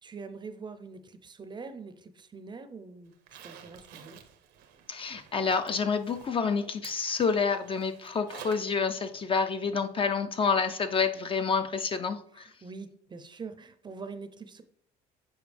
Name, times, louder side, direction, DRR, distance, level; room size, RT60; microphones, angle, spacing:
voice 1, 0.0-4.2 12.3-14.6, right 4 dB, 25° right, 10 dB, 0.5 m, -44 dB
Zipper (clothing), 3.1-8.8 9.1-9.2 11.1-11.2 11.6-11.7, right 8 dB, 80° right, 0.8 m, -51 dB
voice 2, 4.9-12.5, left 5 dB, 30° left, 8 dB, 0.4 m, -28 dB
7.1 x 4.4 x 3.3 m, 0.66 s
cardioid pair, 110°, 17 cm